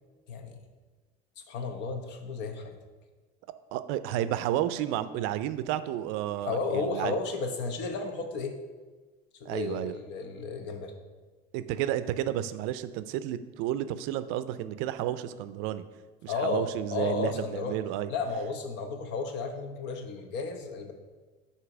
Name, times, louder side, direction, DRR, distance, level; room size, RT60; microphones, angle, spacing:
voice 1, 0.3-0.6 1.5-2.8 6.4-8.6 9.4-10.9 16.3-17.8 18.1-20.9, left 4 dB, 60° left, 6 dB, 0.9 m, -33 dB
voice 2, 3.7-7.1 9.5-9.9 11.5-15.8 16.2-18.1, right 12 dB, 80° right, 13 dB, 0.4 m, -31 dB
8.1 x 2.8 x 5.9 m, 1.3 s
cardioid pair, 140°, 20 cm